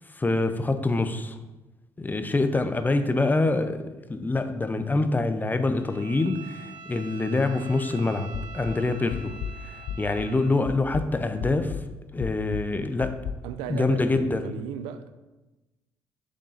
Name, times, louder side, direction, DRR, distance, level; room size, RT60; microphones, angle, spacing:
voice 1, 0.2-1.4 2.0-9.4 9.6-11.8 12.1-13.2 13.7-14.5, left 2 dB, 20° left, 0.6 m, -25 dB
Bowed string instrument, 5.7-10.6, right 4 dB, 40° right, 2.0 m, -45 dB
sound 1, 8.3-10.4 10.7-13.3, left 8 dB, 85° left, 0.4 m, -35 dB
voice 2, 13.4-15.1, right 9 dB, 85° right, 0.3 m, -36 dB
6.4 x 3.9 x 4.0 m
supercardioid pair, 60°, 8 cm